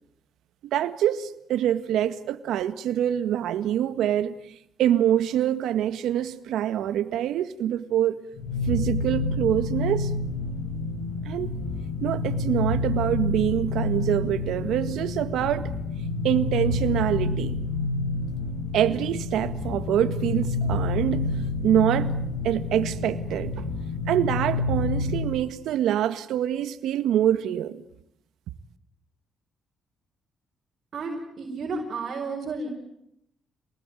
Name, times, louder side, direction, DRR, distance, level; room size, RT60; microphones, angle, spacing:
voice 1, 0.6-4.3 4.8-8.2 8.7-10.1 11.2-11.5 12.0-15.7 16.2-17.6 18.7-22.1 22.4-23.6 24.1-27.8, right 11 dB, 80° right, 1.7 m, -25 dB
sound 1, 8.4-25.4, left 3 dB, 65° left, 7.1 m, -28 dB
voice 2, 30.9-32.7, right 3 dB, 55° right, 5.5 m, -32 dB
27.5 x 20.0 x 9.2 m
cardioid pair, 90°, 0 cm